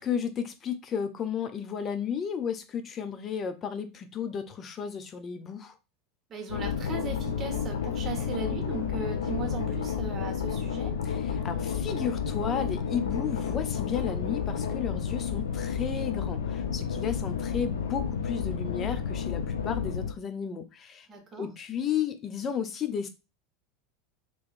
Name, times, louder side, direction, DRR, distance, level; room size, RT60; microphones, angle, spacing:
voice 1, 0.0-5.8 11.0-21.1 21.4-23.1, left 7 dB, 35° left, 9 dB, 0.6 m, -33 dB
voice 2, 6.3-10.9 21.1-21.5, right 5 dB, 35° right, 3 dB, 1.2 m, -38 dB
sound 1, 6.5-20.1, left 7 dB, 75° left, 0.6 m, -31 dB
3.6 x 3.0 x 2.5 m, 0.27 s
hypercardioid pair, 85°, 0 cm